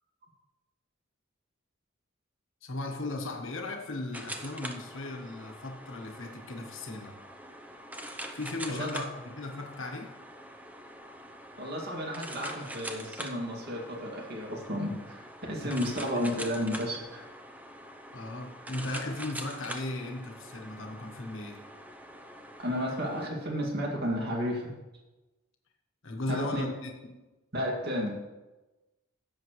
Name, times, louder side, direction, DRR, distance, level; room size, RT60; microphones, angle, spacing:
voice 1, 2.6-7.2 8.3-10.1 15.6-15.8 16.1-16.2 18.1-21.6 26.0-27.3, left 2 dB, 70° left, 1.3 m, -37 dB
sound 1, 4.1-23.3, right 1 dB, 10° right, 0.7 m, -44 dB
voice 2, 8.7-9.0 11.6-17.3 22.6-24.8 26.3-26.7 27.5-28.1, equal, 50° right, 2.3 m, -32 dB
16.0 x 7.2 x 3.1 m
head